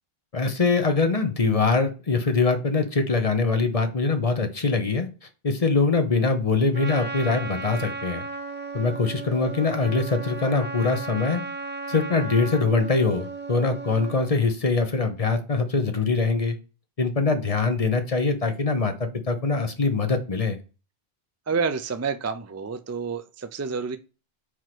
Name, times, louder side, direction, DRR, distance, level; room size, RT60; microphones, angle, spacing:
voice 1, 0.3-5.1 5.4-8.2 8.7-11.4 11.9-16.6 17.0-20.6, left 4 dB, 35° left, 7 dB, 1.0 m, -23 dB
Trumpet, 6.7-14.3, right 3 dB, 10° right, 0.8 m, -35 dB
voice 2, 21.5-24.0, right 5 dB, 25° right, 10 dB, 0.3 m, -29 dB
4.9 x 4.6 x 6.0 m, 0.33 s
omnidirectional pair, 1.1 m